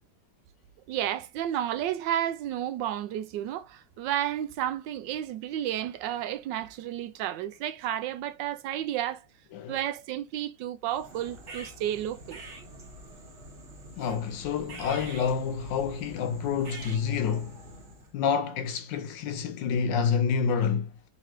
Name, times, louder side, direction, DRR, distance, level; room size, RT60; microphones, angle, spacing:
voice 1, 0.9-9.2 9.7-12.4, right 11 dB, 75° right, 1.1 m, -32 dB
sound 1, 10.9-18.1, right 2 dB, 40° right, 1.4 m, -46 dB
voice 2, 14.0-17.6 18.1-20.9, left 6 dB, 75° left, 1.2 m, -28 dB
3.8 x 3.2 x 4.3 m
omnidirectional pair, 2.2 m